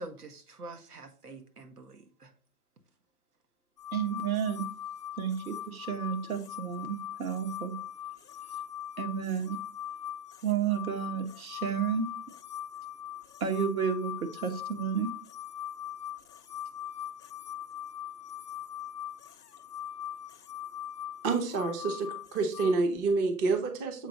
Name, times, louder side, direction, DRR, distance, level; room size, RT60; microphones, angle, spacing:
voice 1, 0.0-2.3, right 2 dB, 85° right, 1.7 m, -46 dB
sound 1, 3.8-22.8, left 11 dB, 85° left, 0.7 m, -41 dB
voice 2, 3.9-4.7 5.2-7.7 9.0-9.6 10.4-12.1 13.4-15.2, right 7 dB, 70° right, 1.7 m, -31 dB
voice 3, 21.2-24.1, right 3 dB, 15° right, 0.6 m, -28 dB
7.4 x 4.7 x 3.9 m
hypercardioid pair, 130°, 45 cm